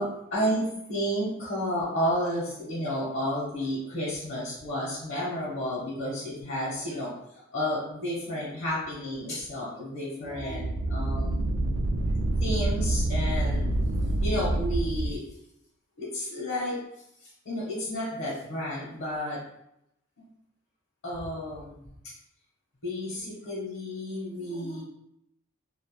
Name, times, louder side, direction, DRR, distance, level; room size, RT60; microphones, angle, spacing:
voice 1, 0.0-11.5 12.4-13.6 14.2-15.2 16.0-16.8 17.2-19.4 20.2-20.3 21.0-22.1 22.8-24.8, equal, 60° left, -7 dB, 0.9 m, -31 dB
sound 1, 10.3-15.1, right 1 dB, 70° right, 0.3 m, -27 dB
2.4 x 2.0 x 3.0 m, 0.79 s
head